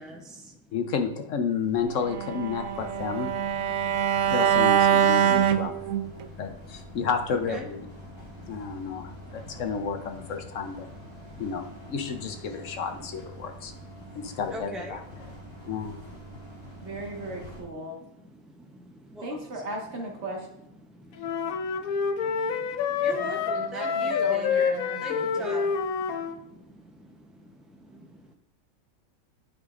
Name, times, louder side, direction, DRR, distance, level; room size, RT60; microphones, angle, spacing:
voice 1, 0.0-0.6 6.1-6.3 7.5-7.7 8.1-9.6 11.2-11.5 12.7-12.8 13.4-15.7 16.3-17.0 18.0-19.6 20.8-24.7 25.0-25.6 26.1-28.3, equal, ahead, 1 dB, 0.3 m, -44 dB
voice 2, 0.7-3.3 4.3-5.7 6.4-7.9 8.5-10.9 11.4-13.7 14.1-15.3 15.7-16.0, left 6 dB, 70° left, 6 dB, 1.0 m, -31 dB
Bowed string instrument, 2.1-6.3, right 9 dB, 75° right, 1.0 m, -23 dB
sound 1, 2.7-17.6, left 1 dB, 20° right, 2.5 m, -46 dB
voice 3, 16.8-18.0 19.2-20.5 23.2-25.7, right 2 dB, 55° right, 0 dB, 1.7 m, -37 dB
sound 2, 21.2-26.4, left 6 dB, 90° left, 1.1 m, -27 dB
9.8 x 5.0 x 2.5 m, 0.83 s
omnidirectional pair, 1.4 m